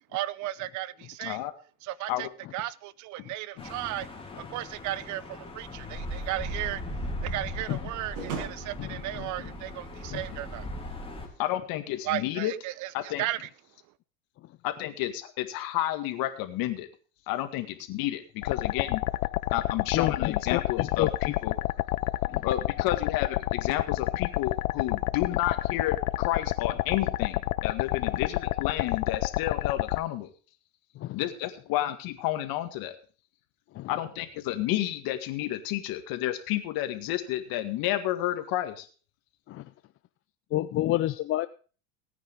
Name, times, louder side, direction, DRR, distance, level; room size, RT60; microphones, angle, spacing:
voice 1, 0.1-1.4 1.8-2.3 2.5-4.1 4.4-6.8 7.2-10.9 12.0-12.9 13.2-13.5, right 15 dB, 45° right, 20 dB, 0.7 m, -35 dB
voice 2, 1.2-1.5 2.1-2.3 11.4-12.5 12.9-13.2 14.6-16.9 17.3-19.0 19.5-21.5 22.4-30.3 31.1-33.0 33.9-38.9, left 14 dB, 55° left, 9 dB, 2.1 m, -31 dB
sound 1, 3.6-11.3, left 1 dB, 15° left, 3.2 m, -38 dB
sound 2, 6.2-10.8, right 4 dB, 75° right, 5.6 m, -42 dB
sound 3, 18.4-30.0, left 17 dB, 80° left, 0.7 m, -29 dB
voice 3, 19.9-21.1 22.3-22.4 31.0-31.2 33.8-33.9 39.5-39.6 40.5-41.5, left 15 dB, 30° left, 13 dB, 0.5 m, -29 dB
18.5 x 9.5 x 3.7 m, 0.38 s
hypercardioid pair, 100°, 42 cm